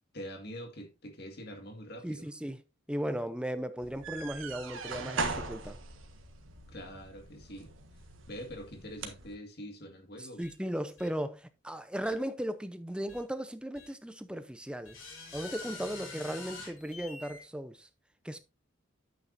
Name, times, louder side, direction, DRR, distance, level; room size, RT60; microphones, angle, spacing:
voice 1, 0.1-2.3 6.7-7.7 8.3-10.4, equal, 50° left, 2.0 m, -44 dB
voice 2, 2.0-2.6 2.9-5.8 10.2-15.0 15.3-17.9 18.2-18.4, equal, 5° right, 0.6 m, -36 dB
sound 1, 3.8-9.3, right 3 dB, 80° right, 1.5 m, -40 dB
sound 2, 10.4-10.5 11.0-11.1 12.0-12.2 13.1-13.2 13.8-13.9 14.9-17.4, left 3 dB, 90° left, 3.2 m, -45 dB
9.1 x 8.5 x 2.6 m
head